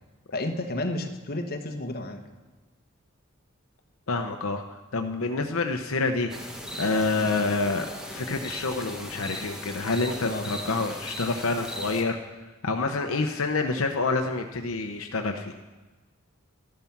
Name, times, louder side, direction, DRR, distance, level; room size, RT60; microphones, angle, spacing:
voice 1, 0.3-2.2 10.2-10.5, left 2 dB, 45° left, 4 dB, 1.3 m, -31 dB
voice 2, 4.1-4.6 4.9-6.3 6.8-12.2 12.6-15.5, left 3 dB, 80° left, 5 dB, 0.8 m, -27 dB
sound 1, 6.3-12.0, equal, 5° right, 1.4 m, -38 dB
13.0 x 11.0 x 5.9 m, 1.2 s
head